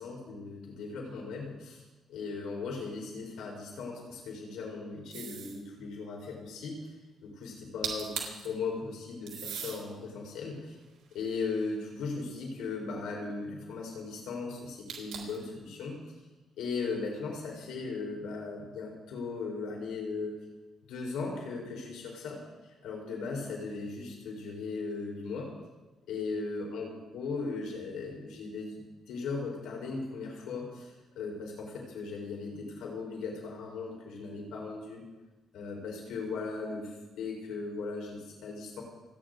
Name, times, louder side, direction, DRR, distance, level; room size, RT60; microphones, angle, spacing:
voice 1, 0.0-1.8 2.1-6.8 7.2-10.8 11.1-16.0 16.6-20.4 20.8-22.4 22.8-25.5 26.1-28.8 29.1-35.0 35.5-36.9 37.2-38.8, left 4 dB, 80° left, -1 dB, 4.7 m, -37 dB
sound 1, 5.1-5.6 7.6-7.7 7.8-8.5 9.3-9.8 10.5-11.9 14.9-15.4, right 8 dB, 75° right, 3.5 m, -39 dB
29.0 x 9.8 x 4.0 m, 1.2 s
cardioid pair, 90°, 0 cm